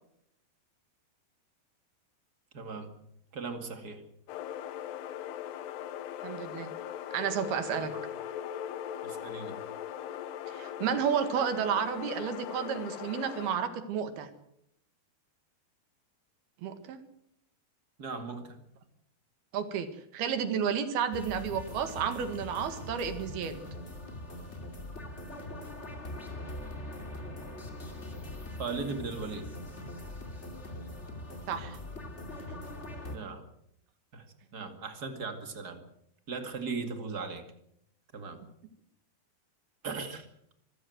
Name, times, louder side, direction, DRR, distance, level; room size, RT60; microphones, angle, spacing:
voice 1, 2.5-2.9 3.3-4.0 7.8-8.0 9.0-9.6 18.0-18.6 28.6-29.5 33.1-33.5 34.1-34.3 34.5-35.8 36.3-37.5 38.1-38.4 39.8-40.3, right 4 dB, 35° right, 7 dB, 1.8 m, -38 dB
sound 1, 4.3-13.5, left 10 dB, 80° left, 3.1 m, -40 dB
voice 2, 6.2-6.7 7.1-7.9 10.5-14.3 16.6-17.0 19.5-19.9 20.1-23.6 31.5-31.8, right 7 dB, 70° right, 9 dB, 3.6 m, -31 dB
sound 2, 21.1-33.2, left 1 dB, 20° left, 2.2 m, -42 dB
24.5 x 15.5 x 7.9 m, 0.76 s
omnidirectional pair, 4.8 m